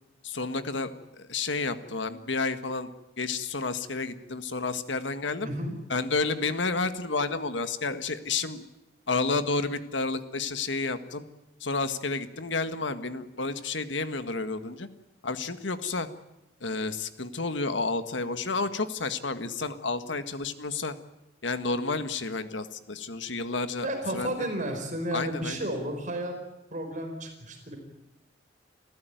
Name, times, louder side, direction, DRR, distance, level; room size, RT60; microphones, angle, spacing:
voice 1, 0.2-2.9 3.2-5.5 5.9-8.6 9.1-11.2 11.6-14.9 15.2-16.1 16.6-20.9 21.4-24.4 25.1-25.6, left 3 dB, 75° left, 10 dB, 1.7 m, -30 dB
voice 2, 5.4-5.8 23.8-26.3 26.7-27.8, right 1 dB, 40° right, 4 dB, 4.9 m, -32 dB
28.0 x 15.0 x 9.3 m, 0.97 s
head